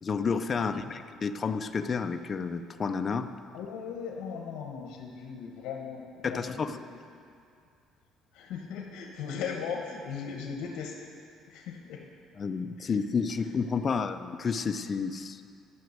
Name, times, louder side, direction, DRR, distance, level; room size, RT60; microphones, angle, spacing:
voice 1, 0.0-3.3 6.2-6.8 12.4-15.4, left 5 dB, 25° left, 8 dB, 0.4 m, -30 dB
voice 2, 0.6-0.9 3.5-7.0 8.3-11.0 11.5-12.0 12.8-12.9, left 6 dB, 75° left, 0 dB, 1.2 m, -38 dB
12.5 x 6.0 x 7.9 m, 2.4 s
cardioid pair, 155°, 0 cm